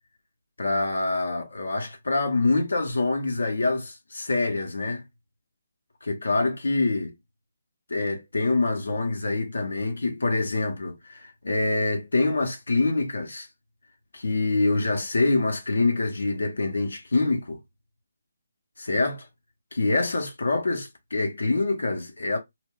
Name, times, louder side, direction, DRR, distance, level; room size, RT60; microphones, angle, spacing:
voice 1, 0.6-5.0 6.0-7.1 7.9-13.5 14.1-17.6 18.8-19.3 19.7-22.4, left 3 dB, 80° left, 0.6 m, -25 dB
2.2 x 2.1 x 3.6 m
figure-of-eight pair, 150°, 0 cm